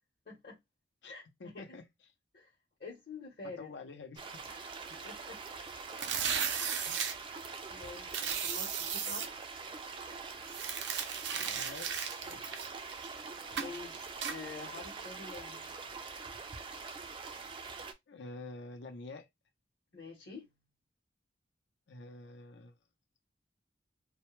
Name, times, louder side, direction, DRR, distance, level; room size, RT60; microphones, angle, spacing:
voice 1, 0.3-0.6 1.1-1.2 1.5-1.6 2.3-2.5 2.8-3.7 5.0-5.4 7.7-9.3 13.5-15.7 19.9-20.5, left 4 dB, 55° left, 0.8 m, -47 dB
voice 2, 1.4-1.8 3.4-4.4 4.9-5.0 6.8-7.1 11.3-12.4 18.1-19.3 21.9-22.7, left 3 dB, 90° left, 0.6 m, -48 dB
sound 1, 4.2-17.9, right 4 dB, 30° right, 0.3 m, -44 dB
sound 2, 5.9-7.1 8.1-9.3 10.5-13.1 13.6-13.8 14.2-14.4, right 7 dB, 90° right, 0.5 m, -35 dB
2.1 x 2.1 x 3.0 m
head